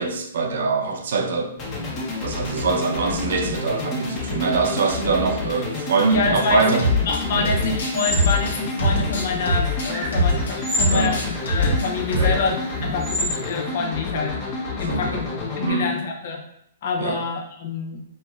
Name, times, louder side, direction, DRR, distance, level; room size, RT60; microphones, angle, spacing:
voice 1, 0.0-1.5 2.2-6.9 7.3-7.5 10.9-11.2 12.1-12.5 12.8-12.9 14.8-15.2 15.6-15.9 17.0-17.2, right 4 dB, 70° right, 3 dB, 0.5 m, -23 dB
sound 1, 1.6-15.7, left 3 dB, 30° left, 0.9 m, -30 dB
voice 2, 6.1-6.8 7.1-16.5 16.8-18.0, left 4 dB, 60° left, 2 dB, 0.6 m, -27 dB
sound 2, 6.8-7.2 7.5-10.5 10.8-11.9 12.1-12.4, left 1 dB, 80° left, 1.0 m, -22 dB
sound 3, 7.1-13.6, equal, 15° right, 0.7 m, -32 dB
4.2 x 2.0 x 2.3 m, 0.73 s
hypercardioid pair, 140°, 0 cm